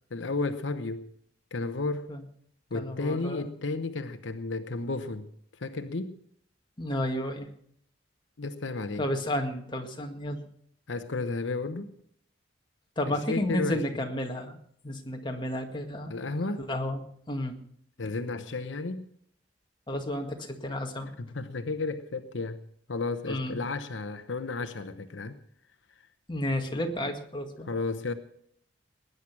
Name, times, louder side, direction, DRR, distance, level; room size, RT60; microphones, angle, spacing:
voice 1, 0.1-1.1 1.5-2.1 2.7-5.3 5.6-6.2 8.4-9.1 10.9-11.9 13.1-14.0 16.1-16.7 18.0-19.1 21.2-22.6 22.9-25.4 27.7-28.1, left 3 dB, 80° left, 0.9 m, -33 dB
voice 2, 2.7-3.5 6.8-7.5 9.0-10.4 13.0-14.6 14.8-16.1 16.6-17.6 19.9-21.1 23.3-23.6 26.3-27.7, left 1 dB, 25° left, 1.9 m, -32 dB
19.5 x 10.0 x 6.0 m
head